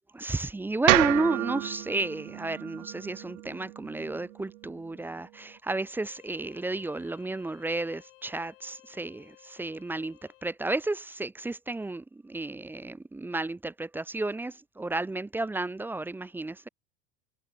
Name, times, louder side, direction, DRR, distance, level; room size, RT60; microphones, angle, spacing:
voice 1, 0.1-16.7, right 2 dB, 5° right, 0.4 m, -32 dB
sound 1, 0.9-5.0, right 18 dB, 75° right, 0.6 m, -30 dB
Bowed string instrument, 5.7-10.6, left 21 dB, 65° left, 7.8 m, -57 dB
hypercardioid pair, 90°, 40 cm